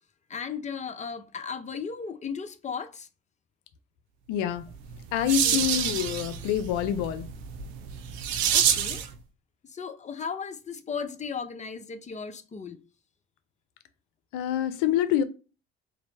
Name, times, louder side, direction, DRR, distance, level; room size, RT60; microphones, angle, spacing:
voice 1, 0.3-3.1 5.4-5.6 8.5-9.0 9.6-12.8, left 6 dB, 20° left, 0.6 m, -36 dB
voice 2, 4.3-4.7 5.1-7.3 14.3-15.2, left 10 dB, 70° left, 0.5 m, -26 dB
sound 1, 4.7-9.1, right 9 dB, 80° right, 0.6 m, -28 dB
3.1 x 2.6 x 4.0 m
hypercardioid pair, 55°, 31 cm